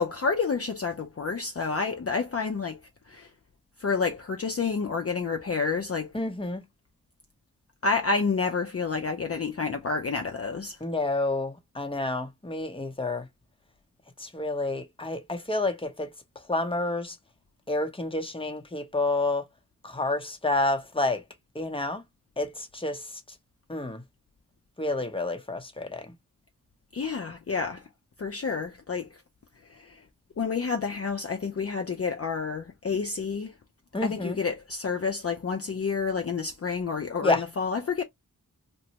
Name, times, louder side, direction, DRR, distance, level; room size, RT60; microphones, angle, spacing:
voice 1, 0.0-2.8 3.1-3.3 3.8-6.1 7.8-10.8 26.9-27.8 28.2-29.1 29.7-30.0 30.4-33.5 34.0-38.0, left 5 dB, 45° left, 0.5 m, -29 dB
voice 2, 6.1-6.7 10.8-13.3 14.2-16.1 16.5-17.2 17.7-19.4 19.8-21.2 21.5-22.0 22.4-23.2 23.7-24.0 24.8-26.1 33.9-34.4 37.2-37.4, left 2 dB, 15° left, 0.7 m, -29 dB
2.9 x 2.1 x 2.8 m
wide cardioid pair, 55°, 34 cm